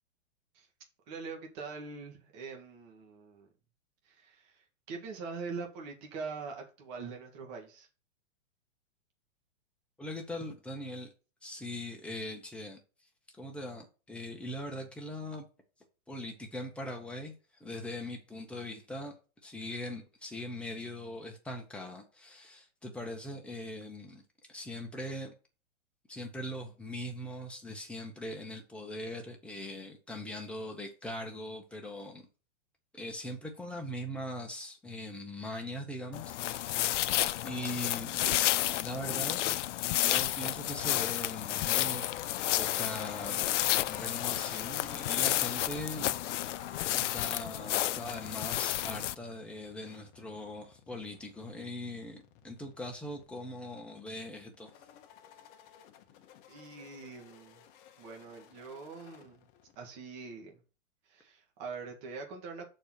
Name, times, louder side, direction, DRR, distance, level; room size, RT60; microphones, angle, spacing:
voice 1, 1.1-3.5 4.1-7.9 56.5-57.6 58.0-59.5 59.8-60.6 61.1-62.7, right 4 dB, 35° right, 2.0 m, -43 dB
voice 2, 10.0-11.1 11.4-12.8 13.3-15.5 16.1-17.3 17.6-19.2 19.4-24.2 24.5-25.3 26.1-32.3 32.9-37.1 37.4-38.2 38.7-39.5 39.9-42.1 42.6-46.6 46.9-54.7, left 1 dB, 5° left, 1.0 m, -41 dB
sound 1, 36.1-49.1, left 14 dB, 70° left, 0.5 m, -31 dB
sound 2, 40.6-59.8, left 9 dB, 25° left, 0.9 m, -50 dB
6.4 x 4.4 x 6.5 m
hypercardioid pair, 155°, 38 cm